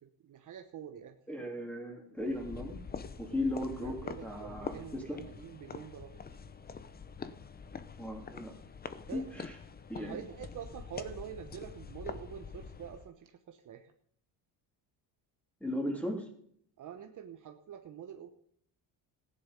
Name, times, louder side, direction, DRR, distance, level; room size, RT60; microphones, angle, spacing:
voice 1, 0.0-1.1 3.8-6.2 9.1-9.4 9.9-13.9 16.8-18.3, right 9 dB, 45° right, 6 dB, 1.1 m, -46 dB
voice 2, 1.3-2.8 3.2-5.2 8.0-8.5 9.1-9.5 9.9-10.2 15.6-16.2, left 1 dB, 5° left, 2 dB, 3.1 m, -36 dB
sound 1, 2.2-13.1, left 5 dB, 20° left, 0.8 m, -45 dB
15.0 x 10.0 x 5.3 m, 0.66 s
cardioid pair, 115°, 43 cm